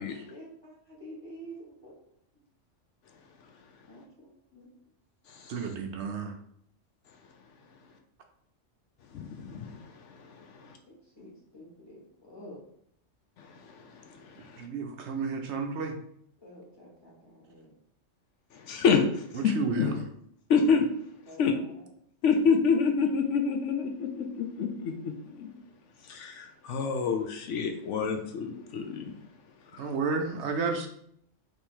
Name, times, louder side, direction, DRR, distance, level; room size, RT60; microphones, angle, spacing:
voice 1, 0.3-1.9 3.9-4.7 10.9-12.6 16.4-17.7 21.3-21.7, right 1 dB, 20° left, -4 dB, 1.3 m, -48 dB
voice 2, 5.5-6.3 14.6-16.0 19.3-20.0 29.8-30.9, right 4 dB, 70° right, 4 dB, 0.8 m, -31 dB
voice 3, 9.1-9.8 10.1-10.7 13.4-14.7 18.6-19.3 19.8-19.9 20.5-20.9 21.4-21.5 22.2-24.9 25.3-25.5 26.1-29.1 29.7-29.9, left 5 dB, 70° left, 4 dB, 0.9 m, -28 dB
3.5 x 3.1 x 4.4 m, 0.68 s
omnidirectional pair, 1.3 m